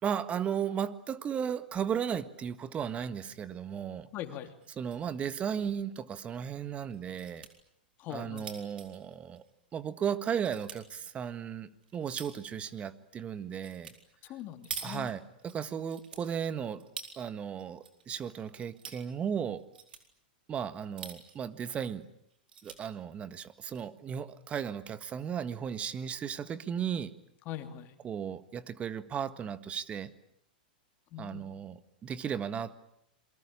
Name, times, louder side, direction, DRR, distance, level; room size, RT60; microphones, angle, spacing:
voice 1, 0.0-4.1 4.7-7.5 8.1-9.4 9.7-13.9 14.8-16.8 17.1-19.6 20.5-22.0 22.6-27.1 28.0-30.1 31.2-32.7, right 8 dB, 25° right, 13 dB, 1.6 m, -35 dB
voice 2, 4.1-4.5 8.0-8.5 14.2-15.1 27.5-27.9 31.1-31.5, left 11 dB, 40° left, 8 dB, 3.0 m, -41 dB
sound 1, 4.6-5.1 5.4-5.5 5.8-5.9 6.9-7.5 8.0-9.9 10.3-10.8 11.4-12.5 13.6-14.0 14.2-15.5 15.9-17.2 17.6-18.2 18.5-19.0 19.6-20.0 20.8-21.5 21.9-22.0 22.3-22.8 23.5-23.8, right 7 dB, 75° right, 4.3 m, -45 dB
28.0 x 23.0 x 8.7 m, 0.75 s
hypercardioid pair, 110°, 5 cm